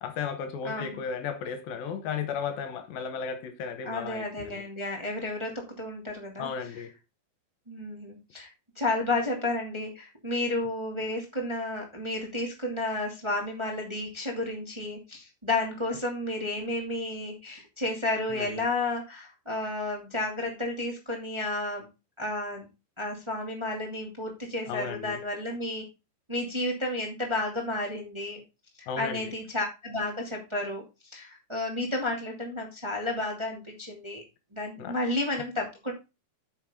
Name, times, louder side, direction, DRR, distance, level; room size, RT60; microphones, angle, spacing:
voice 1, 0.0-4.6 6.4-6.9 18.3-18.7 24.7-25.2 28.9-29.3 34.8-34.9, left 6 dB, 75° left, 2.8 m, -35 dB
voice 2, 0.6-1.0 3.8-6.5 7.7-8.5 8.8-21.9 22.2-22.6 23.0-25.8 26.3-28.4 28.8-30.8 31.1-34.2 34.5-35.9, left 2 dB, 10° right, 2.0 m, -32 dB
9.6 x 6.4 x 3.7 m
omnidirectional pair, 4.3 m